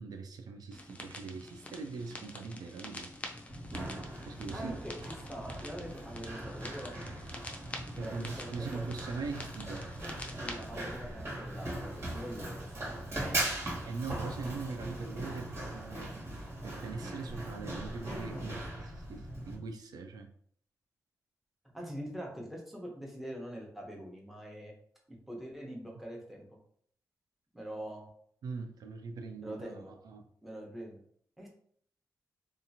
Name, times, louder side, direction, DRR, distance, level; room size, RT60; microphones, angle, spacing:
voice 1, 0.0-3.1 4.3-4.8 7.9-10.0 13.9-16.1 16.6-20.3 28.4-30.3, right 4 dB, 75° right, 5 dB, 0.3 m, -41 dB
sound 1, 0.7-10.7, left 1 dB, 20° left, 0.5 m, -47 dB
Run, 3.5-19.5, right 1 dB, 45° right, 1.4 m, -40 dB
voice 2, 4.5-7.0 7.9-8.9 10.4-13.0 21.7-24.7 25.1-26.5 27.5-28.0 29.4-29.9 30.4-31.0 31.4-31.5, equal, 5° right, -1 dB, 0.8 m, -44 dB
2.8 x 2.4 x 2.7 m, 0.63 s
cardioid pair, 80°, 7 cm